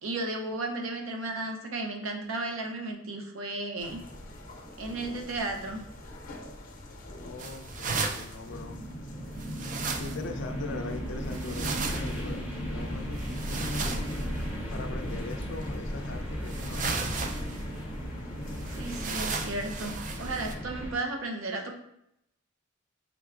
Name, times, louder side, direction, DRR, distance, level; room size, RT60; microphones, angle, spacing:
voice 1, 0.0-4.0 4.8-5.8 18.8-19.9 20.2-21.7, right 2 dB, 70° right, 3 dB, 0.7 m, -34 dB
sound 1, 3.8-19.2, left 1 dB, 40° left, 0.9 m, -45 dB
voice 2, 7.2-8.8 10.0-14.1 14.7-17.4, left 3 dB, 60° left, 6 dB, 0.5 m, -41 dB
sound 2, 7.4-8.3 9.4-10.3 11.3-12.2 13.2-14.3 15.4-15.5 16.5-17.6 18.5-20.5, right 4 dB, 40° right, 0.4 m, -35 dB
sound 3, 8.5-20.9, equal, 10° right, 0.7 m, -35 dB
4.6 x 3.6 x 2.4 m, 0.80 s
head